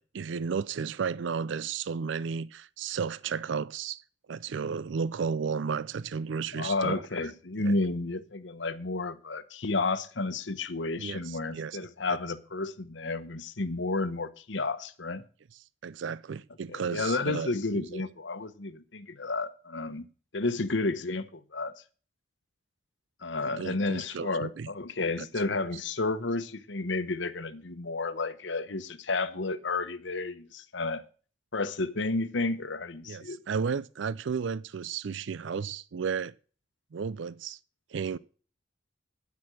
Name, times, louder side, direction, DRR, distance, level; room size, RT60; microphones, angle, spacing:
voice 1, 0.0-4.0 4.3-7.0 7.6-7.7 11.0-11.8 12.1-12.2 15.8-18.0 23.4-24.7 33.1-36.3 36.9-37.6 37.9-38.2, right 6 dB, 75° right, 0.4 m, -33 dB
voice 2, 6.6-15.2 16.7-20.1 20.3-21.7 23.2-31.0 31.5-33.4, left 3 dB, 75° left, 1.0 m, -31 dB
9.6 x 8.6 x 6.4 m
head